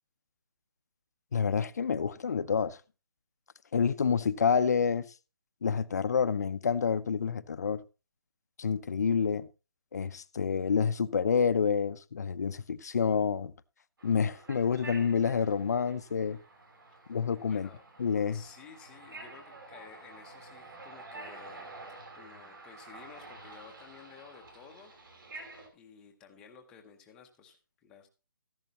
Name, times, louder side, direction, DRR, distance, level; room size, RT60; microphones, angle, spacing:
voice 1, 1.3-2.8 3.7-5.1 5.6-7.8 8.6-9.5 9.9-13.5 14.0-16.4 17.1-17.7 18.0-18.4, left 6 dB, 45° left, 0.6 m, -28 dB
sound 1, 14.0-25.7, right 2 dB, 65° right, 5.6 m, -49 dB
voice 2, 17.5-17.8 18.3-21.7 22.1-24.9 25.7-28.1, left 7 dB, 5° left, 0.7 m, -53 dB
14.0 x 11.0 x 2.9 m
hypercardioid pair, 175°, 12 cm